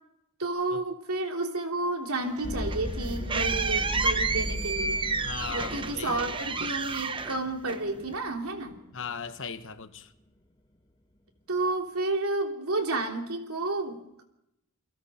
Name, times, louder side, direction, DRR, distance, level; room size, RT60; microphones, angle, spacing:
voice 1, 0.4-5.0 5.5-8.8 11.5-14.2, right 2 dB, 75° right, 3.3 m, -31 dB
sound 1, 2.3-8.1, right 4 dB, 25° right, 0.9 m, -31 dB
sound 2, 2.4-9.4, equal, 20° left, 1.8 m, -37 dB
voice 2, 5.2-6.2 8.9-10.1, left 6 dB, 65° left, 1.2 m, -38 dB
28.5 x 24.0 x 4.4 m
head